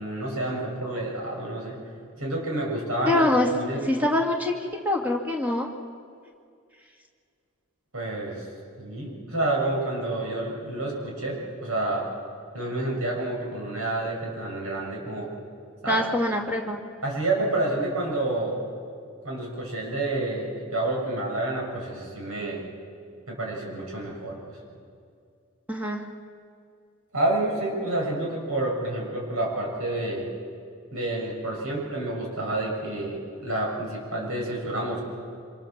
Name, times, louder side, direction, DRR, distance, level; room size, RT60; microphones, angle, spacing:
voice 1, 0.0-1.8 2.2-3.2 3.5-3.8 7.9-8.4 8.8-12.1 12.5-15.3 15.8-16.0 17.0-18.6 19.2-22.6 23.3-24.6 27.1-30.3 30.9-35.0, right 2 dB, 85° right, -1 dB, 6.8 m, -29 dB
voice 2, 3.1-3.5 3.8-4.5 4.8-5.7 15.9-16.8 25.7-26.0, left 1 dB, 10° right, 0 dB, 2.1 m, -24 dB
26.0 x 25.5 x 7.4 m, 2.3 s
head